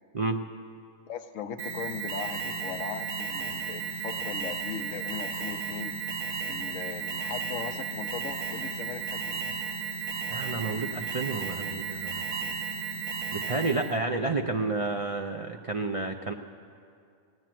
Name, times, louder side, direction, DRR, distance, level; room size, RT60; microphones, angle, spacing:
voice 1, 1.1-5.9 6.5-9.4, left 7 dB, 70° left, 8 dB, 1.1 m, -38 dB
Alarm, 1.6-14.0, right 6 dB, 80° right, 1.6 m, -34 dB
voice 2, 10.3-12.2 13.3-16.3, right 3 dB, 55° right, 3 dB, 0.3 m, -30 dB
17.0 x 9.9 x 7.6 m, 2.3 s
omnidirectional pair, 1.5 m